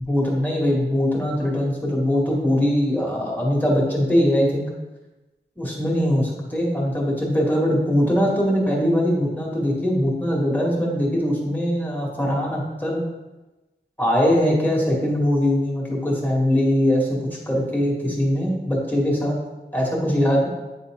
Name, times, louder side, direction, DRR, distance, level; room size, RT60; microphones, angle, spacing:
voice 1, 0.1-4.7 5.6-13.0 14.0-17.2 17.5-19.4 19.7-20.5, equal, 10° left, -3 dB, 1.9 m, -21 dB
8.7 x 3.9 x 3.7 m, 1.1 s
wide cardioid pair, 65°, 19 cm